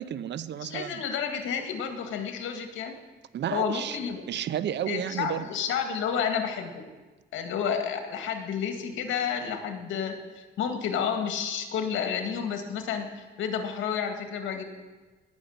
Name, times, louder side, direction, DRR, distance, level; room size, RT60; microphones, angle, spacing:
voice 1, 0.0-1.0 3.3-5.5, right 10 dB, 65° right, 16 dB, 0.7 m, -32 dB
voice 2, 0.6-2.9 3.5-4.3 4.9-6.8 7.3-14.6, left 7 dB, 85° left, 5 dB, 2.0 m, -30 dB
19.0 x 6.5 x 8.7 m, 1.3 s
cardioid pair, 90°, 20 cm